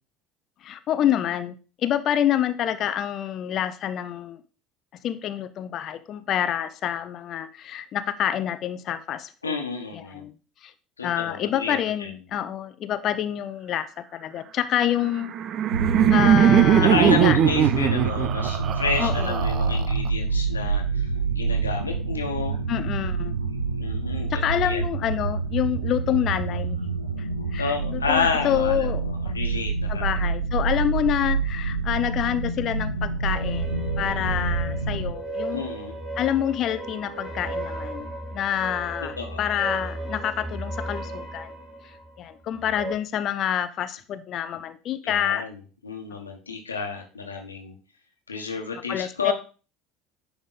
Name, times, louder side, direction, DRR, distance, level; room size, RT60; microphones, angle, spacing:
voice 1, 0.6-1.5 1.8-4.4 5.0-9.5 10.1-10.3 10.6-10.7 11.0-15.3 16.1-17.4 19.0-19.4 22.7-23.4 24.3-26.8 27.2-29.3 29.9-33.7 34.0-35.6 36.2-41.5 42.2-45.4 48.9-49.3, left 10 dB, 45° left, 12 dB, 0.5 m, -27 dB
voice 2, 9.4-10.2 11.0-12.1 16.8-22.6 23.8-24.8 27.6-30.3 35.5-36.0 39.2-39.5 45.0-47.8 48.3-49.3, left 5 dB, 85° left, 2 dB, 1.2 m, -30 dB
Laughter, 15.0-20.1, right 10 dB, 45° right, 0.4 m, -20 dB
sound 1, 15.7-35.1, right 4 dB, 90° right, 0.8 m, -27 dB
sound 2, 33.2-42.9, right 1 dB, 25° right, 2.3 m, -35 dB
9.9 x 3.5 x 4.0 m, 0.35 s
figure-of-eight pair, 65°, 0 cm